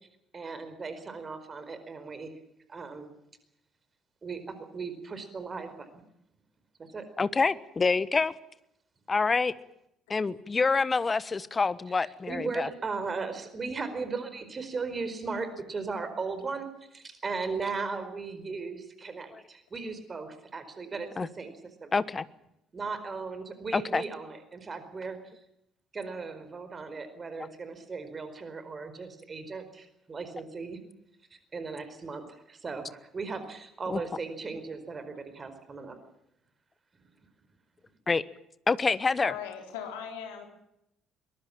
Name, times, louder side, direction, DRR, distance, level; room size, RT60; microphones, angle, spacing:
voice 1, 0.3-2.3 2.7-3.1 4.2-6.0 6.8-7.1 12.0-21.5 21.8-21.9 22.7-25.2 25.9-30.8 31.3-36.0, right 4 dB, 35° right, 10 dB, 4.7 m, -37 dB
voice 2, 7.2-8.3 9.1-9.5 10.1-12.7 19.3-19.4 21.2-21.3 21.9-22.2 23.7-24.0 33.9-34.0 38.1-38.2 38.7-39.3, left 4 dB, 30° left, 17 dB, 1.2 m, -26 dB
voice 3, 39.2-40.5, left 8 dB, 75° left, 4 dB, 3.8 m, -38 dB
22.5 x 21.5 x 7.4 m, 0.79 s
figure-of-eight pair, 50°, 0 cm